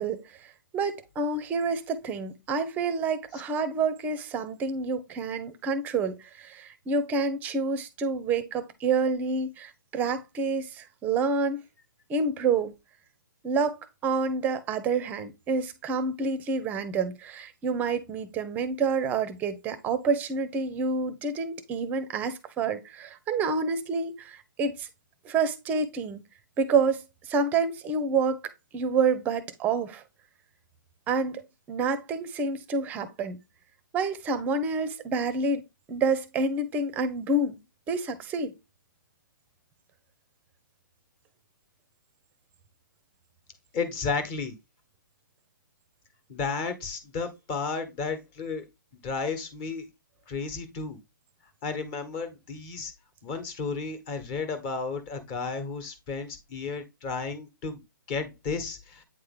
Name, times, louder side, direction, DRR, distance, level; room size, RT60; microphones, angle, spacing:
voice 1, 0.0-11.6 12.1-12.7 13.4-24.9 25.2-26.2 26.6-30.0 31.1-33.4 33.9-35.6 35.9-37.6 37.9-38.5, right 4 dB, 15° right, 0.7 m, -28 dB
voice 2, 43.7-44.6 46.3-48.6 49.0-49.9 50.3-51.0 51.6-52.9 53.2-57.8 58.1-59.0, left 4 dB, 25° left, 1.3 m, -33 dB
8.6 x 3.3 x 3.6 m
hypercardioid pair, 150°, 11 cm